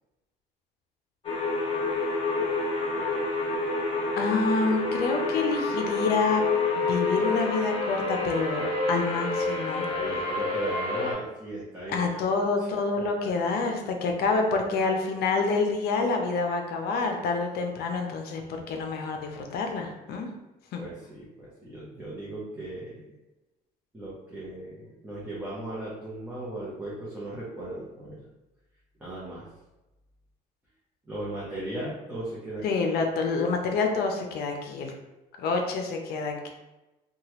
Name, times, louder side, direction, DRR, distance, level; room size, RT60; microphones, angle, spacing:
sound 1, 1.2-11.1, left 3 dB, 30° left, 1.0 m, -28 dB
voice 1, 4.2-6.4 6.8-9.9 11.9-20.3 20.7-20.8 32.6-34.9 35.4-36.5, left 4 dB, 70° left, 3 dB, 0.5 m, -27 dB
voice 2, 9.9-13.3 13.6-13.7 14.0-14.6 20.8-23.0 23.9-28.2 29.0-29.5 31.1-32.7, right 1 dB, 10° right, -8 dB, 0.8 m, -37 dB
2.9 x 2.3 x 2.9 m, 1.0 s
cardioid pair, 110°, 17 cm